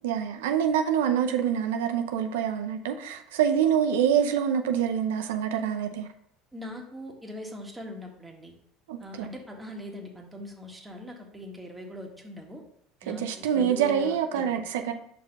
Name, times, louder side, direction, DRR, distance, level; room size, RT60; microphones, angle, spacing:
voice 1, 0.0-6.1 8.9-9.3 13.1-14.9, right 8 dB, 85° right, 6 dB, 0.5 m, -26 dB
voice 2, 6.5-8.5 9.0-12.6 13.0-14.6, left 1 dB, 10° right, 1 dB, 1.7 m, -41 dB
5.1 x 4.3 x 5.2 m, 0.69 s
hypercardioid pair, 85°, 0 cm